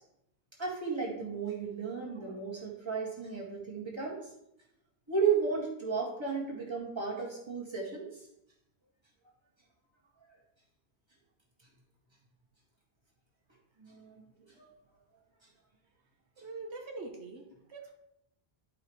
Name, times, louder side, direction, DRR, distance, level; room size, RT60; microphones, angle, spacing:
voice 1, 0.6-4.2 5.1-8.2 13.8-14.1 14.6-14.7, right 5 dB, 25° right, -4 dB, 2.0 m, -34 dB
voice 2, 16.4-17.9, right 3 dB, 80° right, 2 dB, 1.3 m, -43 dB
11.0 x 5.0 x 3.2 m, 0.80 s
omnidirectional pair, 1.1 m